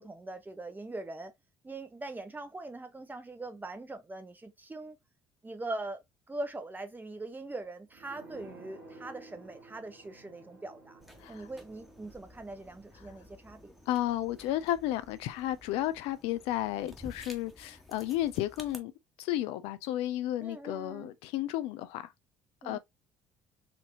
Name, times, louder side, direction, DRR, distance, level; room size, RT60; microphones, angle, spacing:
voice 1, 0.0-1.3 1.6-5.0 5.4-6.0 6.3-11.0 11.3-13.7 20.4-21.1 22.6-22.8, right 2 dB, 15° right, 0.9 m, -42 dB
sound 1, 7.9-17.2 17.5-17.6, right 2 dB, 80° right, 1.8 m, -55 dB
sound 2, 11.0-18.8, left 1 dB, ahead, 1.2 m, -53 dB
voice 2, 13.9-18.9 19.2-22.1 22.6-22.8, left 13 dB, 65° left, 0.4 m, -33 dB
4.3 x 2.7 x 2.7 m
hypercardioid pair, 55°, 11 cm